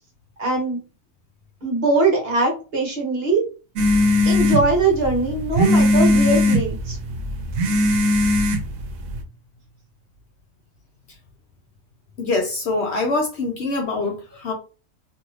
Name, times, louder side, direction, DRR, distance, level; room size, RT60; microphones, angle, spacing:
voice 1, 0.4-0.8 1.6-3.4 4.2-7.0, right 3 dB, 50° right, 0 dB, 1.0 m, -21 dB
sound 1, 3.8-9.2, left 1 dB, 75° right, 1.0 m, -19 dB
voice 2, 12.2-14.5, left 3 dB, 65° left, 2 dB, 0.7 m, -24 dB
2.7 x 2.5 x 3.1 m, 0.34 s
omnidirectional pair, 1.5 m